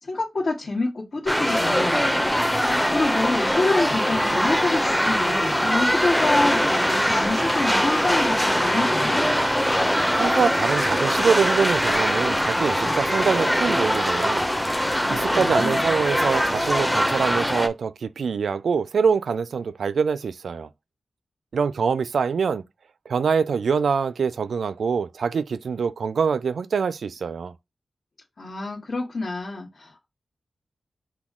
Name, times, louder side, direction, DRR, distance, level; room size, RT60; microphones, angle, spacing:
voice 1, 0.0-2.2 2.5-9.2 15.0-15.9 28.4-30.1, left 2 dB, 55° left, 1.5 m, -27 dB
sound 1, 1.3-17.7, equal, 5° left, 0.6 m, -22 dB
voice 2, 10.2-14.5 15.1-20.7 21.5-22.6 23.1-27.5, right 6 dB, 80° right, 0.3 m, -24 dB
6.0 x 2.2 x 3.6 m
wide cardioid pair, 95°, 0 cm